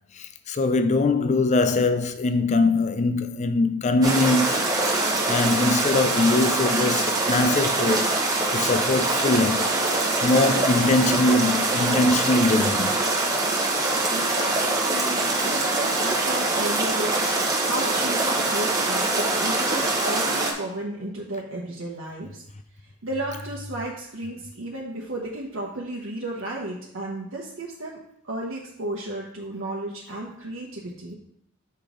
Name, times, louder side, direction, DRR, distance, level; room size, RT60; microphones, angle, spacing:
voice 1, 0.2-5.0 5.3-8.2 8.5-9.7 10.2-13.0, left 2 dB, 35° left, 0.4 m, -22 dB
sound 1, 4.0-20.5, right 2 dB, 15° right, 1.1 m, -24 dB
voice 2, 14.1-17.3 17.6-22.4 23.0-28.0 28.2-31.2, right 1 dB, 65° right, 1.0 m, -33 dB
6.7 x 5.1 x 3.8 m
head